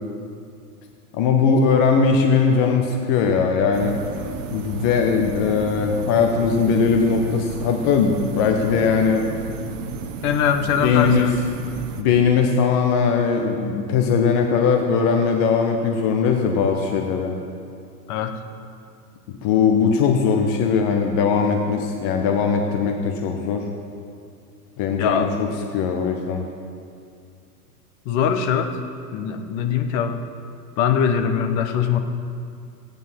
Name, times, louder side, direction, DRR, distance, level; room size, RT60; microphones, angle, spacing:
voice 1, 1.1-4.0 4.5-9.2 10.8-11.3 12.0-17.3 19.4-23.6 24.8-25.5 25.7-26.4, left 5 dB, 15° left, 3 dB, 0.3 m, -20 dB
sound 1, 3.7-12.0, right 6 dB, 50° right, 1.1 m, -33 dB
voice 2, 10.2-11.4 18.1-18.4 25.0-25.3 28.0-28.7 29.1-30.2 30.8-32.0, left 7 dB, 35° left, 7 dB, 1.2 m, -22 dB
15.0 x 9.2 x 5.7 m, 2.4 s
figure-of-eight pair, 100°, 48 cm